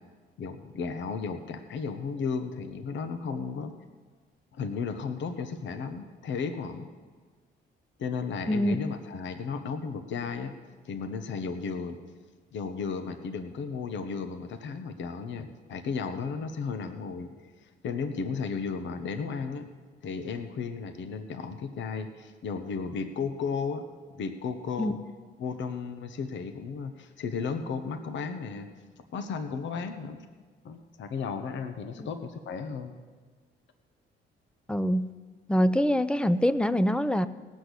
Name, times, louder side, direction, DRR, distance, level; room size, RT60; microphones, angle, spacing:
voice 1, 0.4-3.7 4.5-6.9 8.0-10.5 10.8-12.0 12.5-17.3 17.8-19.7 20.0-23.9 24.2-25.0 25.4-28.7 29.1-30.2 30.6-32.9, left 5 dB, 70° left, 8 dB, 1.0 m, -34 dB
voice 2, 34.7-35.1 35.5-37.3, equal, 5° left, 14 dB, 0.5 m, -24 dB
17.5 x 6.4 x 8.3 m, 1.5 s
cardioid pair, 90°, 20 cm